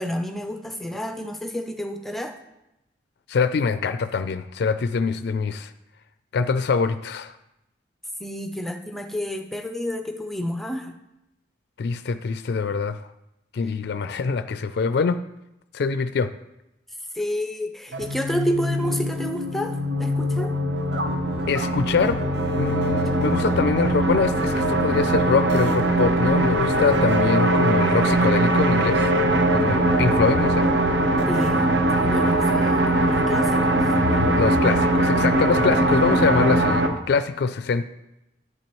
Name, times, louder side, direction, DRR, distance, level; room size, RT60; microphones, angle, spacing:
voice 1, 0.0-2.4 8.2-10.9 17.1-20.5 31.3-31.7 32.0-33.8, equal, ahead, 5 dB, 0.5 m, -30 dB
voice 2, 3.3-5.7 6.3-7.3 11.8-13.1 13.5-15.2 15.7-16.3 21.5-22.2 22.6-29.1 29.5-30.7 34.0-37.8, left 5 dB, 60° left, 11 dB, 0.4 m, -24 dB
sound 1, 17.9-36.9, right 1 dB, 70° right, 0.9 m, -21 dB
10.5 x 9.3 x 3.1 m, 0.90 s
head